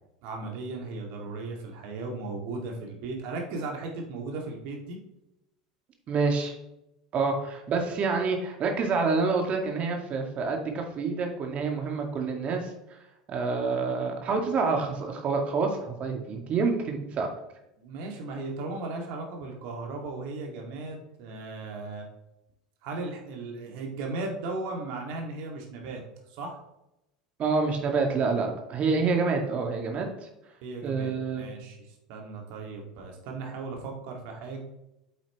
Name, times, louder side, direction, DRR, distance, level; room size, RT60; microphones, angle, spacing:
voice 1, 0.2-5.0 17.8-22.1 22.8-26.0 26.3-26.6 30.6-34.6, right 3 dB, 55° right, 1 dB, 2.3 m, -36 dB
voice 2, 6.1-6.5 7.1-12.7 13.3-17.3 27.4-30.1 30.8-31.5, right 4 dB, 40° right, 3 dB, 2.1 m, -27 dB
8.2 x 8.1 x 3.2 m, 0.88 s
figure-of-eight pair, 80°, 4 cm